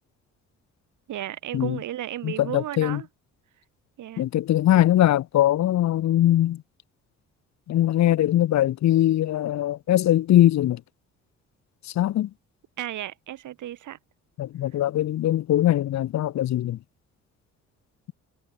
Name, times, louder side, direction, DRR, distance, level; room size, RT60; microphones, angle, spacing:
voice 1, 1.1-3.1 4.0-4.2 12.8-14.0, right 12 dB, 75° right, 6.2 m, -34 dB
voice 2, 2.2-3.0 4.2-6.6 7.7-10.8 12.0-12.3 14.4-16.8, left 13 dB, 65° left, 0.9 m, -21 dB
cardioid pair, 90°, 30 cm